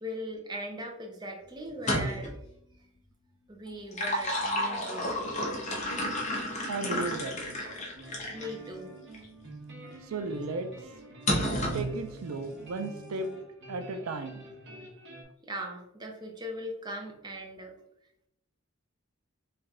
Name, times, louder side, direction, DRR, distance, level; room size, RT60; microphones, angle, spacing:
voice 1, 0.0-2.4 3.5-5.2 8.3-8.9 15.4-17.7, equal, 20° right, 1 dB, 0.6 m, -39 dB
sound 1, 1.7-2.4 3.7-8.5 9.1-9.3 11.3-11.9, left 1 dB, 35° left, 0.9 m, -31 dB
voice 2, 6.7-7.4 10.0-10.7 11.7-13.3 13.7-14.5, right 3 dB, 80° right, 8 dB, 0.4 m, -34 dB
sound 2, 7.9-15.2, right 1 dB, 55° right, 1.2 m, -47 dB
3.3 x 3.1 x 3.6 m, 0.81 s
head